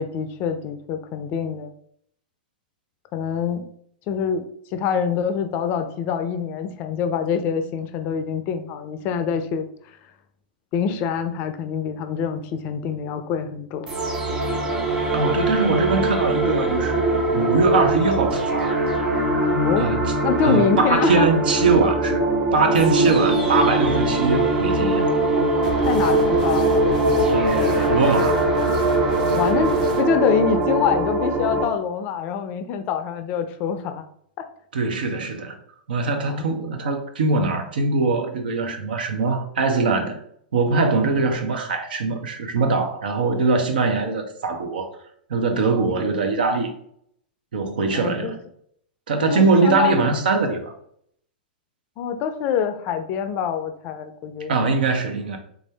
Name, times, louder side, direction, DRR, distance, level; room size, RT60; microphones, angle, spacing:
voice 1, 0.0-1.7 3.1-3.7 4.1-10.0 10.7-13.9 19.5-19.9 20.2-21.3 25.9-26.7 29.3-29.7 30.0-34.0 34.4-34.5 36.3-36.4 47.9-48.3 49.2-50.1 52.0-54.5, left 7 dB, 40° left, 0.4 m, -25 dB
sound 1, 13.9-31.6, right 2 dB, 15° right, 1.3 m, -21 dB
voice 2, 15.1-18.8 19.8-20.1 20.4-22.2 22.5-25.0 27.3-28.4 34.7-35.6 35.9-40.2 40.5-44.9 45.3-46.7 47.5-48.4 49.1-50.7 54.5-55.4, right 3 dB, 75° right, 0.8 m, -22 dB
sound 2, 25.6-30.0, right 1 dB, 60° right, 1.4 m, -34 dB
3.5 x 2.6 x 3.3 m
hypercardioid pair, 115°, 5 cm